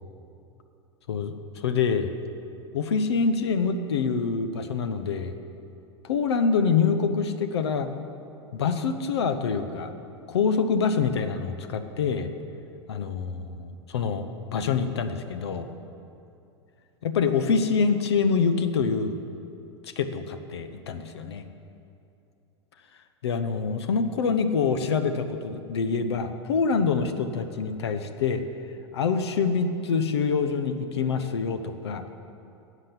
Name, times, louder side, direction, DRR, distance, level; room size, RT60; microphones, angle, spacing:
voice 1, 1.1-2.1 2.7-5.4 6.0-7.9 8.5-9.9 10.3-12.3 12.9-15.7 17.0-19.2 20.0-21.4 23.2-28.4 28.9-32.0, left 5 dB, 65° left, 10 dB, 0.9 m, -26 dB
13.0 x 8.2 x 7.3 m, 2.7 s
figure-of-eight pair, 90°, 15 cm